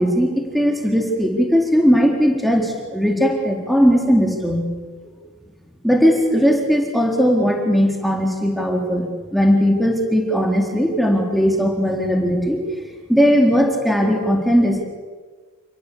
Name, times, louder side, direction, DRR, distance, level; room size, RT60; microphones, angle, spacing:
voice 1, 0.0-4.6 5.8-12.6 13.1-14.8, equal, ahead, 1 dB, 3.8 m, -18 dB
29.5 x 20.0 x 8.7 m, 1.4 s
head